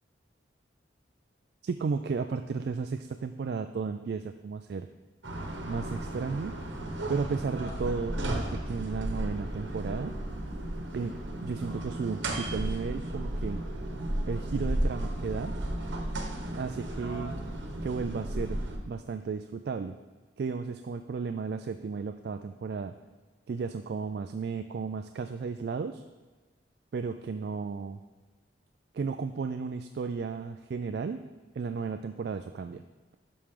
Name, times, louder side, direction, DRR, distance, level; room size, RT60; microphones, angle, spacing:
voice 1, 1.6-4.9 5.6-6.6 7.1-10.1 10.9-13.6 14.3-15.6 16.6-17.3 17.8-20.0 20.4-23.0 23.5-26.0 26.9-28.0 28.9-31.2 31.6-32.8, right 5 dB, 55° right, 8 dB, 0.3 m, -34 dB
sound 1, 5.2-18.8, right 1 dB, 75° right, 1.1 m, -34 dB
11.5 x 6.1 x 3.7 m, 1.3 s
head